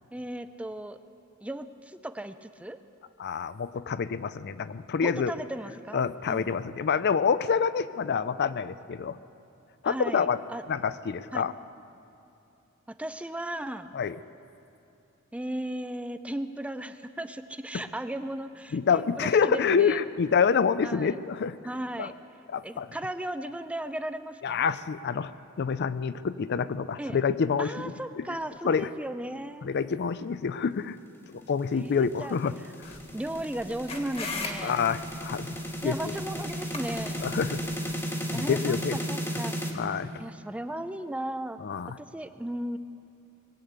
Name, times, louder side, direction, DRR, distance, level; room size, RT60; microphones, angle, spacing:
voice 1, 0.1-1.0 1.4-2.8 5.0-6.6 9.8-10.6 11.3-11.5 13.0-13.9 15.3-20.0 20.8-21.2 21.6-22.1 22.6-24.7 27.0-27.2 27.6-29.7 31.7-32.8 33.1-34.7 35.8-37.2 38.3-39.7 40.2-41.6 42.0-42.8, right 1 dB, 5° right, 10 dB, 0.4 m, -36 dB
voice 2, 3.2-5.3 5.9-9.2 9.8-10.4 10.7-11.5 13.9-14.2 17.7-17.8 18.7-21.6 22.0-22.1 22.5-22.9 24.4-25.3 25.6-27.7 28.2-28.3 28.6-28.9 29.6-31.0 31.3-32.5 34.6-35.5 35.8-36.2 37.2-37.6 38.3-39.0 39.7-40.1 41.6-42.0, left 6 dB, 50° left, 15 dB, 0.4 m, -27 dB
sound 1, 31.6-39.7, equal, 10° left, 1.5 m, -34 dB
sound 2, 32.8-37.9, left 3 dB, 30° left, 1.4 m, -40 dB
21.0 x 8.4 x 8.1 m, 2.8 s
head